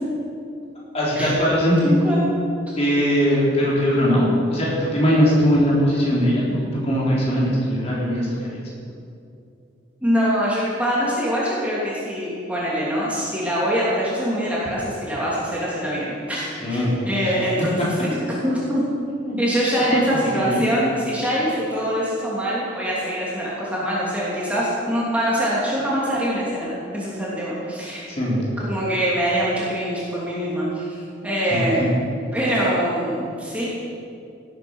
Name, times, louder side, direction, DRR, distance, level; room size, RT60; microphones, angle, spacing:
voice 1, 0.9-1.9 2.8-8.6 16.6-17.0 19.2-19.4 20.1-20.6 28.1-28.4 31.5-31.6, equal, 35° left, -6 dB, 4.0 m, -20 dB
voice 2, 1.8-2.2 10.0-18.8 19.4-28.1 28.7-31.9 32.3-33.6, equal, 5° right, -7 dB, 3.0 m, -24 dB
17.5 x 9.4 x 6.4 m, 2.6 s
head